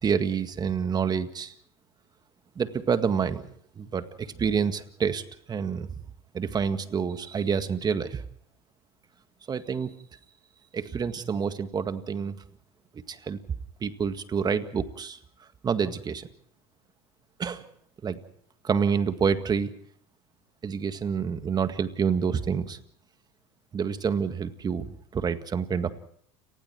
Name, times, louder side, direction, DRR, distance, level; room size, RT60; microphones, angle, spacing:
voice 1, 0.0-1.5 2.6-3.5 3.8-5.2 5.5-6.0 6.3-8.2 9.5-9.9 10.7-12.4 13.1-13.4 13.8-15.2 15.6-16.3 17.4-17.6 18.0-18.2 18.6-19.7 20.6-22.8 23.7-25.9, right 6 dB, 30° right, 10 dB, 1.8 m, -28 dB
30.0 x 19.5 x 4.6 m, 0.65 s
hypercardioid pair, 85°, 14 cm